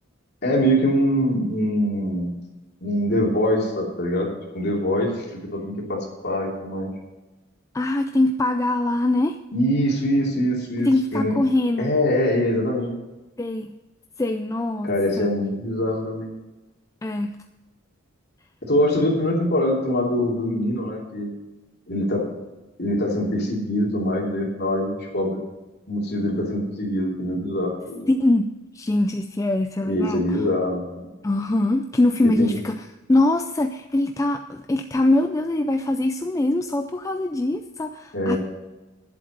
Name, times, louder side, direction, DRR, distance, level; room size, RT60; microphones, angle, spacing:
voice 1, 0.4-2.3 2.8-6.9 9.5-11.4 11.8-12.9 14.8-16.3 18.6-21.3 21.9-22.3 22.8-25.4 25.9-28.1 29.8-31.1 32.4-32.5 38.1-38.4, equal, 50° left, -2 dB, 3.0 m, -23 dB
voice 2, 7.7-9.4 10.8-11.9 13.4-13.7 14.2-15.3 17.0-17.4 28.1-28.5 28.7-30.4 31.2-38.4, left 2 dB, 15° left, 7 dB, 0.3 m, -23 dB
11.0 x 7.7 x 6.5 m, 1.1 s
head